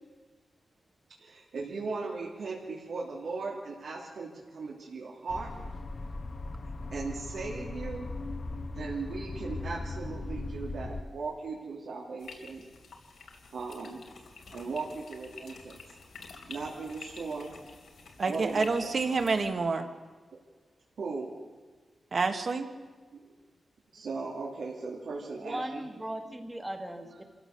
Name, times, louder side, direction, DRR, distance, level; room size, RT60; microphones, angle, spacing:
voice 1, 1.2-5.5 6.9-8.1 8.7-12.6 13.5-14.0 14.5-15.8 16.5-17.5 18.3-18.7 21.0-21.3 23.1-23.2 23.9-25.8, right 4 dB, 85° right, -4 dB, 3.0 m, -37 dB
sound 1, 5.3-11.0, left 2 dB, 40° left, 1.2 m, -38 dB
sound 2, 12.2-19.5, left 4 dB, 85° left, 3.0 m, -49 dB
voice 2, 18.2-19.9 22.1-22.7, right 4 dB, 45° right, 7 dB, 1.6 m, -28 dB
voice 3, 25.4-27.2, right 1 dB, 10° right, 6 dB, 1.7 m, -38 dB
26.5 x 15.0 x 6.8 m, 1.4 s
wide cardioid pair, 165°, 0 cm